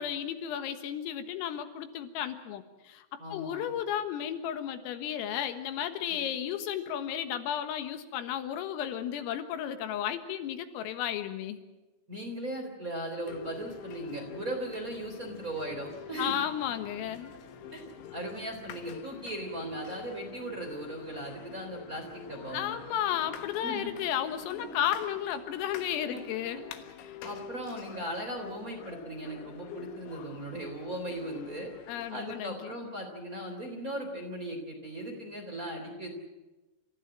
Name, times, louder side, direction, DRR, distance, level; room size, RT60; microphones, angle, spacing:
voice 1, 0.0-11.6 16.2-17.3 22.5-26.6 27.0-27.2 31.9-32.8, left 10 dB, 90° left, 8 dB, 4.1 m, -33 dB
voice 2, 3.2-3.6 6.1-6.2 12.1-16.3 17.7-17.8 18.1-22.8 23.6-23.9 24.5-24.7 26.0-26.2 26.5-26.6 27.2-31.7 32.1-36.1, right 1 dB, 20° right, 2 dB, 3.1 m, -38 dB
sound 1, 13.3-32.1, left 7 dB, 70° left, 3.5 m, -47 dB
29.0 x 14.5 x 8.9 m, 1.1 s
omnidirectional pair, 5.9 m